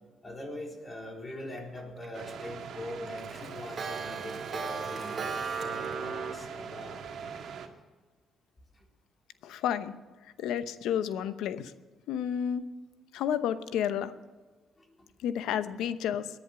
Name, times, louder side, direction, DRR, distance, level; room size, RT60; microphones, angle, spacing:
voice 1, 0.2-7.5 8.7-8.8 14.8-15.1, left 1 dB, 25° left, 1 dB, 3.9 m, -43 dB
Clock, 1.6-2.1 2.5-2.6 2.9-6.3, right 5 dB, 50° right, 2.3 m, -36 dB
sound 1, 2.1-7.7, right 6 dB, 70° right, 1.9 m, -42 dB
voice 2, 9.4-10.0 10.4-11.7 12.1-12.6 13.1-14.1 15.2-16.3, left 9 dB, 90° left, 12 dB, 0.8 m, -31 dB
18.0 x 10.5 x 6.0 m, 1.4 s
cardioid pair, 90°, 0 cm